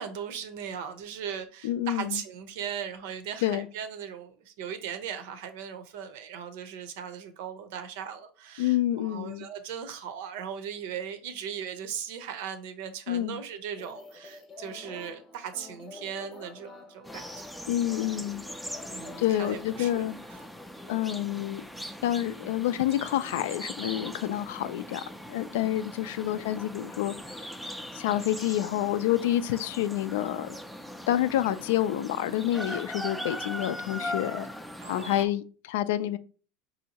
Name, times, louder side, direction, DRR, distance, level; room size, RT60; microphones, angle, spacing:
voice 1, 0.0-17.3 18.8-20.0 20.3-20.4 26.2-26.5 34.8-35.3, right 8 dB, 75° right, 0.7 m, -38 dB
voice 2, 1.6-2.2 3.4-3.7 8.6-9.5 13.1-13.4 17.7-18.4 19.2-20.2 20.9-21.6 22.0-25.0 25.3-27.5 27.9-30.6 31.1-34.5 34.9-36.2, left 13 dB, 80° left, 0.3 m, -28 dB
sound 1, 13.8-19.9, left 3 dB, 25° left, 0.8 m, -48 dB
sound 2, 17.0-35.3, equal, ahead, 0.3 m, -40 dB
5.2 x 2.7 x 2.8 m
supercardioid pair, 145°, 0 cm